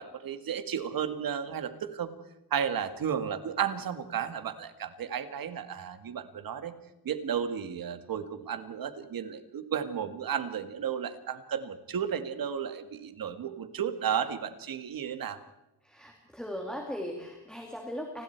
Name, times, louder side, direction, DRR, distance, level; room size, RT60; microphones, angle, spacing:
voice 1, 0.0-2.1 2.5-6.7 7.0-15.4, right 8 dB, 60° right, 10 dB, 1.9 m, -33 dB
voice 2, 15.8-18.2, equal, ahead, 1 dB, 2.6 m, -38 dB
29.0 x 20.5 x 4.6 m, 0.91 s
wide cardioid pair, 165°, 39 cm